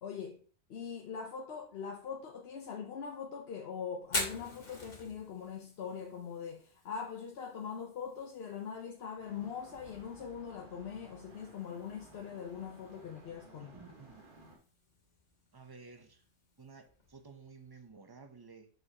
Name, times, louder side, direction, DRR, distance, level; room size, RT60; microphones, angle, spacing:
voice 1, 0.0-0.4 0.7-13.8, left 7 dB, 60° left, 0.9 m, -42 dB
Fire, 4.0-17.9, left 2 dB, 80° left, 2.1 m, -47 dB
sound 1, 9.2-14.6, right 2 dB, 45° right, 1.5 m, -57 dB
voice 2, 13.6-14.3 15.5-16.2 16.6-18.7, right 4 dB, 25° right, 0.6 m, -53 dB
6.0 x 5.5 x 2.9 m
omnidirectional pair, 1.2 m